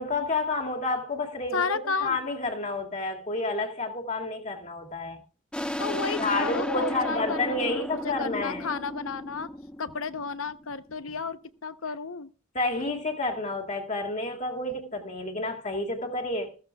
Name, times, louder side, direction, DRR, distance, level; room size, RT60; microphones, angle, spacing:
voice 1, 0.0-5.2 5.9-8.7 12.5-16.6, left 2 dB, 35° left, 2.3 m, -30 dB
voice 2, 1.5-2.2 5.8-9.5 9.8-12.3, left 5 dB, 85° left, 0.9 m, -32 dB
sound 1, 5.5-10.8, left 1 dB, 5° left, 1.2 m, -34 dB
15.0 x 14.5 x 2.4 m
head